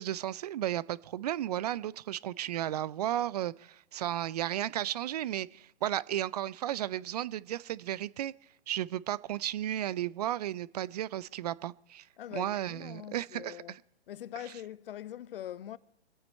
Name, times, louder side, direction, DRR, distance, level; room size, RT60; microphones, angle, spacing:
voice 1, 0.0-8.3 8.7-12.1 12.3-13.8, right 12 dB, 40° right, 0.4 m, -34 dB
voice 2, 12.2-13.7 14.1-15.8, left 11 dB, 60° left, 0.7 m, -43 dB
25.0 x 8.8 x 4.2 m
hypercardioid pair, 135°, 31 cm